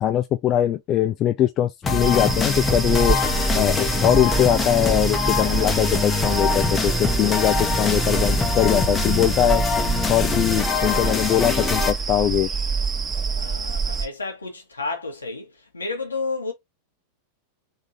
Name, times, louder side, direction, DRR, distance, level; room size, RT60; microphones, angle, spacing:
voice 1, 0.0-3.2 3.5-9.6 10.1-12.5, left 11 dB, 35° left, 0.3 m, -21 dB
sound 1, 1.8-11.9, left 4 dB, 20° left, 1.0 m, -24 dB
sound 2, 2.0-14.1, right 5 dB, 15° right, 1.2 m, -26 dB
voice 2, 13.3-15.5 15.7-16.5, left 3 dB, 75° left, 1.6 m, -31 dB
3.7 x 3.6 x 2.8 m
figure-of-eight pair, 90°, 0 cm